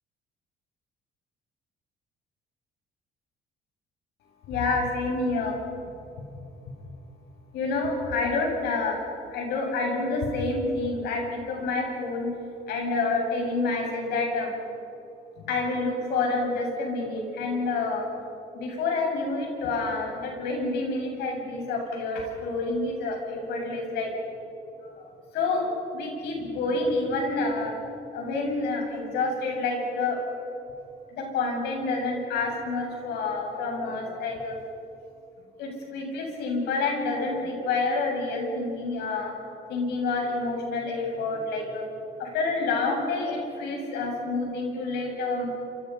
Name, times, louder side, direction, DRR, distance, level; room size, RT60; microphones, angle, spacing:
voice 1, 4.5-5.6 7.5-9.0 9.3-12.3 12.7-14.5 15.4-18.1 18.5-24.1 24.8-25.1 25.3-27.7 28.1-30.2 31.1-34.6 35.6-39.3 39.7-41.9 42.2-45.5, left 3 dB, 80° left, 1 dB, 7.8 m, -28 dB
28.5 x 25.5 x 5.8 m, 2.7 s
cardioid pair, 110°, 17 cm